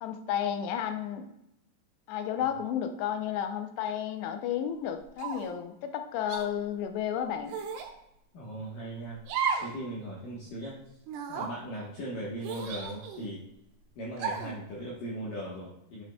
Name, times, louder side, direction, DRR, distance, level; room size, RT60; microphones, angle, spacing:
voice 1, 0.0-1.3 2.1-7.6, left 9 dB, 85° left, 7 dB, 2.9 m, -32 dB
sound 1, 5.2-5.6 6.3-6.5 7.5-7.9 9.3-9.8 10.1-10.2 11.1-11.5 12.4-13.3 14.2-14.6, right 6 dB, 80° right, 2.9 m, -34 dB
voice 2, 8.3-9.2 9.6-10.7 11.3-13.4 14.0-16.0, right 1 dB, 65° left, -5 dB, 2.5 m, -38 dB
8.7 x 6.8 x 2.3 m, 0.80 s
omnidirectional pair, 4.8 m